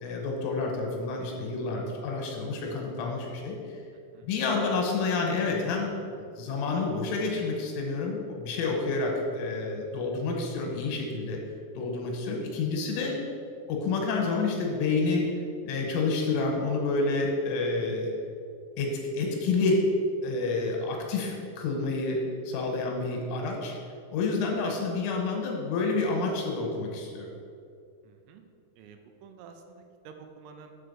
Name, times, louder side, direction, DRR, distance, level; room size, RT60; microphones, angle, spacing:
voice 1, 0.0-3.6 4.2-5.9 6.4-11.4 11.8-13.2 13.7-15.3 15.6-18.1 18.8-19.8 20.2-23.7 24.1-27.3, left 3 dB, 80° left, 1 dB, 3.4 m, -29 dB
voice 2, 28.0-28.4 28.8-30.7, right 6 dB, 85° right, 5 dB, 3.2 m, -49 dB
7.5 x 4.4 x 6.7 m, 2.4 s
omnidirectional pair, 5.9 m